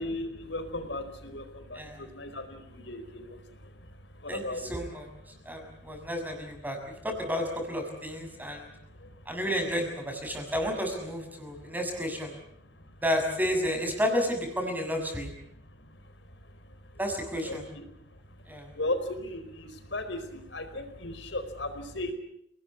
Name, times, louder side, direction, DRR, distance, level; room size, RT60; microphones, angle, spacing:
voice 1, 0.0-4.8 5.3-6.1 8.3-9.3 11.3-11.7 12.6-13.0 15.5-17.0 17.4-22.1, left 1 dB, 85° left, 9 dB, 4.7 m, -38 dB
voice 2, 4.3-5.1 5.4-6.8 7.0-8.7 9.3-12.3 13.0-15.3 17.0-17.6 18.5-18.7, equal, 10° right, 3 dB, 6.5 m, -31 dB
28.5 x 19.0 x 8.7 m, 0.76 s
head